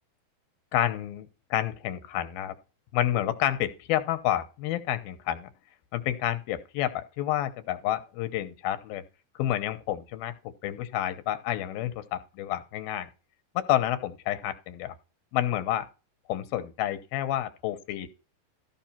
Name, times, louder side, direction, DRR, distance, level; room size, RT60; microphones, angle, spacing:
voice 1, 0.7-2.5 2.9-5.5 5.9-9.0 9.4-10.3 10.6-13.1 13.6-15.0 15.3-15.9 16.3-18.1, left 12 dB, 90° left, 2.8 m, -29 dB
14.5 x 5.7 x 4.4 m
omnidirectional pair, 4.2 m